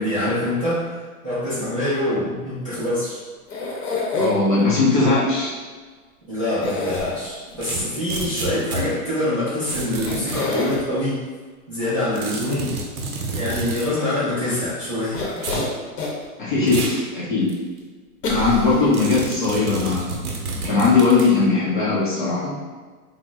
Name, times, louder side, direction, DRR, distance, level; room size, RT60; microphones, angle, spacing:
voice 1, 0.0-3.2 6.3-11.2 11.7-12.8 13.3-15.4, left 1 dB, 25° right, -14 dB, 0.4 m, -25 dB
sound 1, 3.5-4.6 6.6-7.5 9.5-9.6 10.1-10.8 15.1-16.3 16.7-16.8 18.2-19.2 19.8-19.9 20.1-20.2, left 2 dB, 90° left, 0.9 m, -27 dB
voice 2, 4.2-5.5 16.4-17.5 18.3-20.2 20.6-22.6, left 3 dB, 35° left, -7 dB, 0.5 m, -19 dB
sound 2, 7.6-8.9 9.7-10.6 12.1-13.9 15.4-15.7 16.7-17.0 17.5-17.6 18.9-21.3, right 3 dB, 65° right, 0.7 m, -30 dB
2.9 x 2.0 x 3.3 m, 1.4 s
hypercardioid pair, 165°, 46 cm